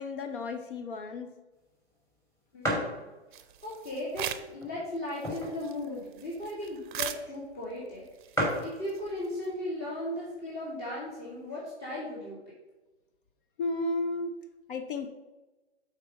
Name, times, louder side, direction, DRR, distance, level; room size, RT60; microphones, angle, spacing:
voice 1, 0.0-1.3 13.6-14.3 14.7-15.1, left 2 dB, 50° left, 8 dB, 0.7 m, -33 dB
sound 1, 1.7-1.8 2.1-2.2 2.6-3.0 3.6-3.7 4.5-5.7 6.1-6.2 6.3-6.6 7.4-7.5 7.7-7.8 8.0-8.1 8.3-8.7 9.6-10.0 10.5-10.6 10.8-11.6, equal, 10° left, 1.7 m, -32 dB
voice 2, 2.5-8.1 8.6-12.4, left 1 dB, 30° left, -6 dB, 2.1 m, -37 dB
sound 2, 3.3-4.6 5.0-9.6, right 10 dB, 50° right, 0.6 m, -41 dB
7.5 x 4.1 x 5.3 m, 1.1 s
figure-of-eight pair, 120°, 34 cm